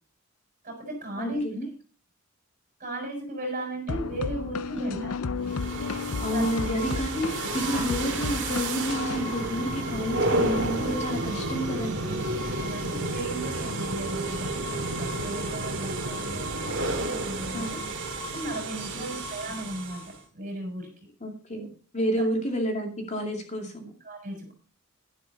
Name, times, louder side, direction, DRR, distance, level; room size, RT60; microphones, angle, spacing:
voice 1, 0.6-1.4 2.8-5.1 6.3-6.5 12.6-17.8 18.3-21.1 22.0-22.3 24.0-24.5, right 1 dB, 40° right, 2 dB, 6.8 m, -36 dB
voice 2, 1.2-1.7 4.7-5.2 6.2-12.2 17.5-17.9 18.9-19.2 21.2-21.7 21.9-23.9, equal, 30° left, 2 dB, 2.4 m, -30 dB
sound 1, 3.9-9.2, left 4 dB, 85° left, 0.6 m, -33 dB
sound 2, 5.4-20.2, right 2 dB, 55° right, 2.3 m, -31 dB
sound 3, 7.7-13.1, right 1 dB, 5° right, 5.3 m, -45 dB
12.0 x 11.5 x 4.1 m, 0.39 s
head